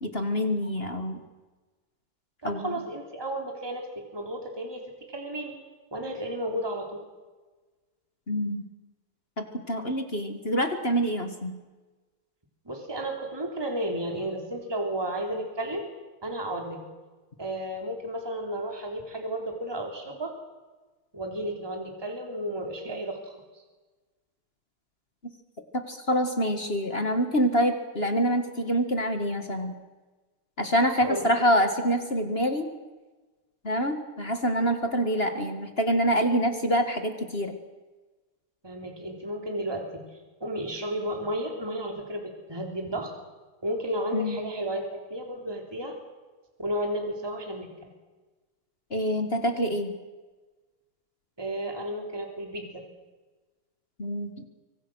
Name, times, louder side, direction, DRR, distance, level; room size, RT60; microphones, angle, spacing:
voice 1, 0.0-1.2 2.4-2.7 8.3-8.6 9.4-11.6 25.7-29.7 30.6-32.7 33.6-37.6 44.1-44.4 48.9-49.9 54.0-54.4, equal, 30° left, 6 dB, 2.0 m, -26 dB
voice 2, 2.4-4.8 5.1-5.5 5.9-7.0 12.7-15.9 16.2-16.8 17.4-20.3 21.1-23.6 31.0-31.3 38.6-40.0 40.4-43.1 43.6-46.0 46.6-47.7 51.4-52.9, right 1 dB, 10° right, 2 dB, 3.5 m, -33 dB
25.0 x 25.0 x 6.4 m, 1.2 s
omnidirectional pair, 2.3 m